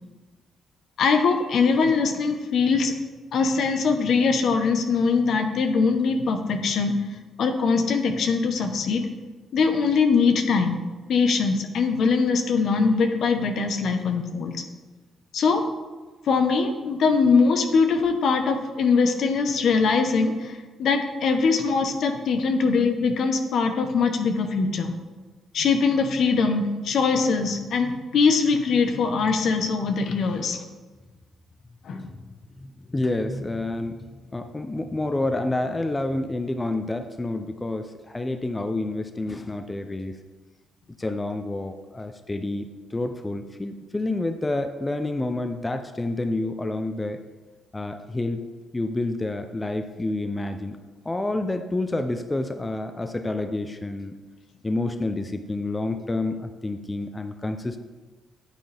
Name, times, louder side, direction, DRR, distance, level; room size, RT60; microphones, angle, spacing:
voice 1, 1.0-2.9 3.3-6.9 7.4-9.1 9.5-10.8 11.1-14.6 15.3-15.6 16.3-24.9 25.5-30.6 31.8-32.1, left 4 dB, 65° left, 6 dB, 1.0 m, -22 dB
voice 2, 32.6-40.1 41.0-47.2 47.7-48.4 48.7-50.8 51.0-54.1 54.6-57.8, left 2 dB, 20° left, 7 dB, 0.6 m, -29 dB
9.1 x 9.0 x 3.5 m, 1.3 s
cardioid pair, 90°, 0 cm